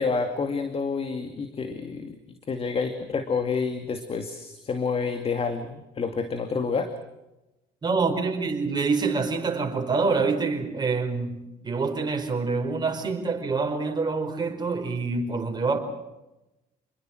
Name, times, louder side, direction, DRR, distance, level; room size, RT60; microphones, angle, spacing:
voice 1, 0.0-2.2 2.5-6.9, left 5 dB, 35° left, 2.4 m, -28 dB
voice 2, 7.8-15.8, right 4 dB, 25° right, 4.8 m, -26 dB
28.5 x 21.5 x 6.4 m
cardioid pair, 110°, 17 cm